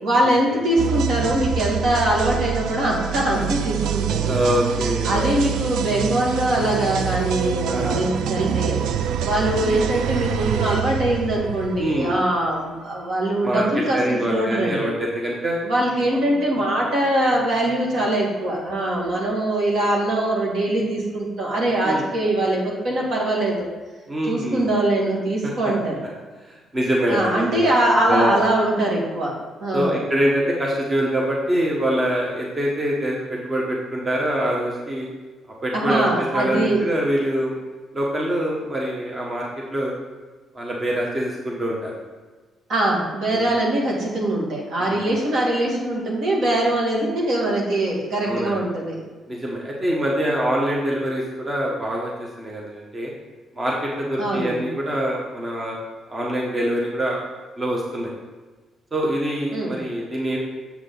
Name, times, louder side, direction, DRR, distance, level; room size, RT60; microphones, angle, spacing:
voice 1, 0.0-4.4 5.0-8.8 9.2-15.0 15.6-23.7 24.3-26.0 27.1-29.3 29.6-30.0 35.7-36.8 42.7-49.0 54.2-54.6 59.5-59.8, right 1 dB, 65° right, -3 dB, 2.1 m, -22 dB
sound 1, 0.8-12.5, right 9 dB, 85° right, 0.4 m, -26 dB
voice 2, 4.2-5.5 7.7-8.0 11.8-12.1 13.4-15.6 16.1-16.2 21.8-22.0 24.1-24.7 26.4-27.7 28.1-28.4 29.7-35.1 35.6-37.6 37.9-39.9 40.5-41.9 43.3-43.5 44.8-45.2 48.2-48.6 49.3-52.1 52.4-53.1 53.5-55.8 56.1-57.2 57.6-58.1 58.9-60.4, equal, 30° right, -3 dB, 1.4 m, -24 dB
7.2 x 6.4 x 3.9 m, 1.3 s
cardioid pair, 90°, 0 cm